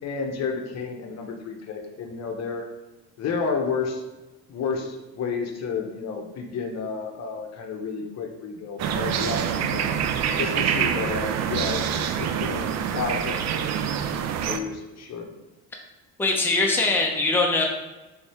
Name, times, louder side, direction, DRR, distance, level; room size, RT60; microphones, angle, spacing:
voice 1, 0.0-2.7 3.2-4.0 4.5-9.9 10.3-13.3 14.5-15.3, left 5 dB, 55° left, 3 dB, 0.8 m, -31 dB
sound 1, 8.8-14.6, right 8 dB, 55° right, 0.4 m, -26 dB
voice 2, 16.2-17.7, left 3 dB, 5° left, -1 dB, 0.7 m, -22 dB
3.6 x 3.2 x 4.2 m, 1.1 s
cardioid pair, 105°, 32 cm